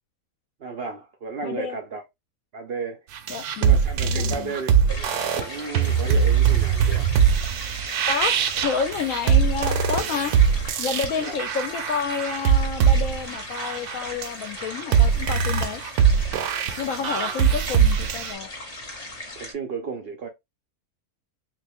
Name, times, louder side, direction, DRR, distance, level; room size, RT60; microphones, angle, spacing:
voice 1, 0.6-2.0 2.5-3.0 3.6-7.1 11.2-11.4 17.0-17.3 19.4-20.3, right 4 dB, 60° right, 0.6 m, -34 dB
voice 2, 1.4-1.8 3.3-3.8 4.0-4.5 8.1-8.4 8.6-10.3 10.8-15.8 16.8-18.5, left 6 dB, 70° left, 0.9 m, -29 dB
sound 1, 3.1-18.3, right 7 dB, 80° right, 1.1 m, -22 dB
sound 2, 4.9-19.5, left 1 dB, 30° left, 0.8 m, -38 dB
3.2 x 2.6 x 3.4 m
omnidirectional pair, 1.6 m